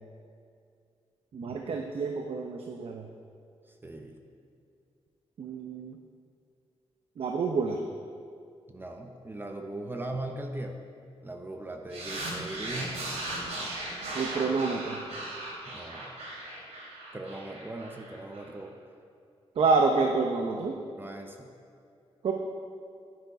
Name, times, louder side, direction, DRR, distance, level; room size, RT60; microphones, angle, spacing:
voice 1, 1.3-3.0 5.4-6.0 7.2-7.8 14.1-15.0 19.6-20.7 22.2-22.3, right 4 dB, 60° right, 3 dB, 0.7 m, -28 dB
voice 2, 3.8-4.2 8.7-10.8 11.2-13.0 15.7-16.1 17.1-18.7 19.6-19.7 21.0-21.5, right 2 dB, 20° right, 4 dB, 0.8 m, -39 dB
sound 1, 11.9-18.4, right 2 dB, 90° right, 2.7 m, -37 dB
10.5 x 9.6 x 4.8 m, 2.4 s
cardioid pair, 105°, 11 cm